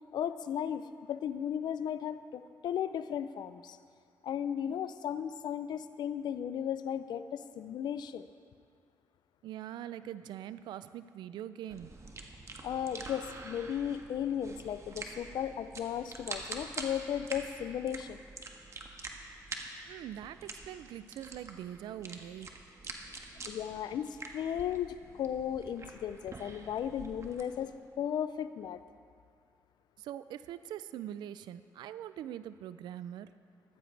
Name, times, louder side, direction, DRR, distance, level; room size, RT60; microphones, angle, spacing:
voice 1, 0.1-3.8 4.2-8.3 12.6-18.2 23.4-27.7 28.0-28.8, left 9 dB, 70° left, 13 dB, 0.5 m, -35 dB
voice 2, 9.4-11.9 19.9-22.5 30.0-33.3, right 11 dB, 80° right, 14 dB, 0.4 m, -43 dB
sound 1, 11.7-27.7, right 3 dB, 40° right, 1.4 m, -46 dB
14.5 x 13.5 x 3.3 m, 2.2 s
supercardioid pair, 55°, 8 cm